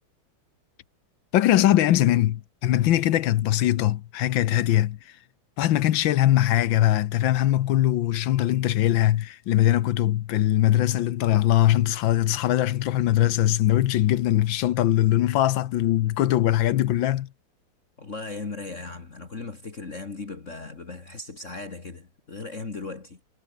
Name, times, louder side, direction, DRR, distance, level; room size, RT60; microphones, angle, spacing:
voice 1, 1.3-5.0 5.6-17.3, left 13 dB, 70° left, 1.5 m, -21 dB
voice 2, 18.0-23.2, left 3 dB, 35° left, 2.4 m, -37 dB
omnidirectional pair, 2.3 m